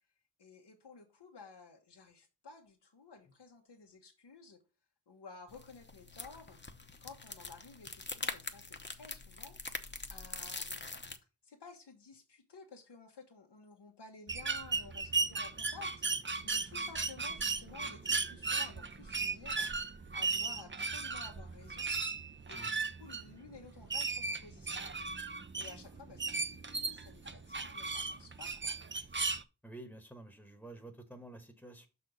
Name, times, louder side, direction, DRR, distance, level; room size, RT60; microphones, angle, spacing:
voice 1, 0.4-4.6 5.1-6.6 7.0-10.8 11.4-16.0 16.4-21.9 22.5-22.6 23.0-24.9 25.5-28.8, left 4 dB, 85° left, 1 dB, 1.1 m, -54 dB
sound 1, 5.5-11.2, left 3 dB, 25° left, 0.9 m, -43 dB
sound 2, 14.3-29.4, right 4 dB, 30° right, 0.6 m, -36 dB
voice 2, 29.6-31.9, right 2 dB, ahead, 5 dB, 1.1 m, -50 dB
6.1 x 4.2 x 6.1 m, 0.31 s
wide cardioid pair, 65°, 40 cm